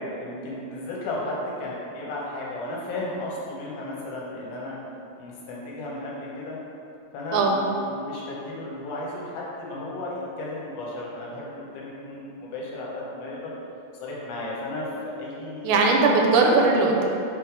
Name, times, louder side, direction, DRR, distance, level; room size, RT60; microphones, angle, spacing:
voice 1, 0.0-4.8 5.2-6.6 7.1-13.5 14.0-15.9, left 2 dB, 80° left, -5 dB, 2.8 m, -34 dB
voice 2, 15.6-17.0, right 3 dB, 85° right, 0 dB, 2.7 m, -19 dB
6.2 x 3.3 x 4.6 m, 2.8 s
omnidirectional pair, 5.1 m